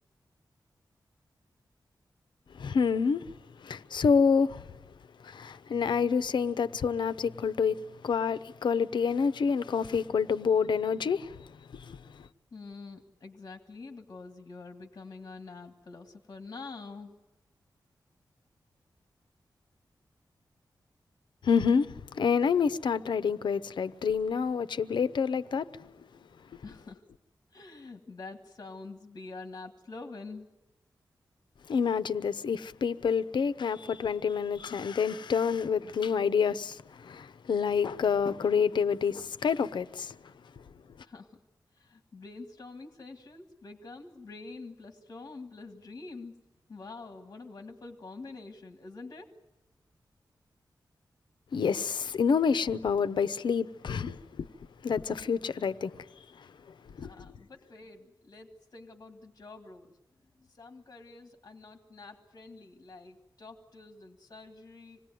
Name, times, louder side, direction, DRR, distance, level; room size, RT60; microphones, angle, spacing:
voice 1, 2.5-3.3 3.6-4.7 5.2-12.3 21.4-25.9 31.7-40.2 51.5-54.5 54.8-56.1 56.3-56.5 56.9-57.3, left 6 dB, 90° left, 0.8 m, -28 dB
voice 2, 12.5-17.1 26.6-27.0 27.5-30.5 41.0-41.4 41.7-46.3 46.7-49.3 57.0-59.9 60.4-65.0, left 3 dB, 45° left, 1.9 m, -46 dB
26.5 x 19.5 x 9.2 m
wide cardioid pair, 145°, 8 cm